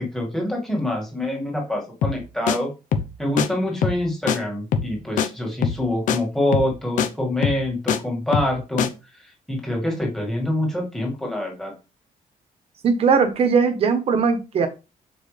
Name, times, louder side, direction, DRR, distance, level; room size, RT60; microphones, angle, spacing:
voice 1, 0.0-2.7 3.2-8.9 9.2-11.7, left 1 dB, 5° left, -2 dB, 2.1 m, -25 dB
sound 1, 2.0-2.2 2.5-2.6 2.9-3.1 3.4-3.5 3.8-4.0 4.3-4.4 4.7-4.9 5.2-5.3 5.6-5.8 6.1-6.2 6.5-6.7 7.0-7.1 7.4-8.0 8.3-8.5 8.8-8.9, left 7 dB, 65° left, 0.8 m, -22 dB
voice 2, 12.8-14.7, right 5 dB, 45° right, 9 dB, 1.0 m, -19 dB
6.7 x 4.6 x 3.3 m, 0.30 s
cardioid pair, 175°, 14 cm